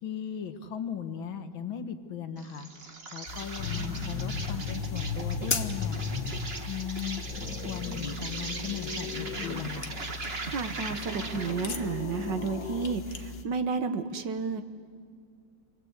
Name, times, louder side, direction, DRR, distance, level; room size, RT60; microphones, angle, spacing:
voice 1, 0.0-6.0 6.7-7.3 7.6-9.9, left 8 dB, 85° left, 8 dB, 2.1 m, -37 dB
Insect, 2.4-11.7, right 3 dB, 35° right, 1.5 m, -40 dB
sound 1, 3.3-13.4, left 5 dB, 40° left, 1.1 m, -40 dB
sound 2, 3.6-6.7 7.0-10.1 10.9-12.9, left 5 dB, 70° left, 1.9 m, -36 dB
voice 2, 10.5-14.6, right 5 dB, 70° right, 8 dB, 1.8 m, -32 dB
28.0 x 23.0 x 8.1 m, 2.2 s
omnidirectional pair, 2.1 m